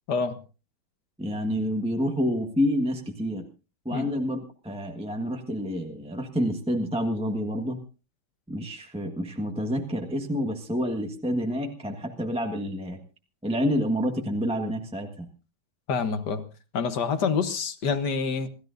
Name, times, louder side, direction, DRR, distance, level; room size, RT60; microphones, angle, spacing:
voice 1, 1.2-3.5 3.8-4.4 4.6-7.8 8.5-13.0 13.4-15.3, equal, 5° right, 3 dB, 1.1 m, -28 dB
voice 2, 15.9-16.4 16.7-18.5, left 5 dB, 60° left, 10 dB, 1.6 m, -27 dB
27.5 x 14.0 x 2.6 m, 0.33 s
omnidirectional pair, 2.2 m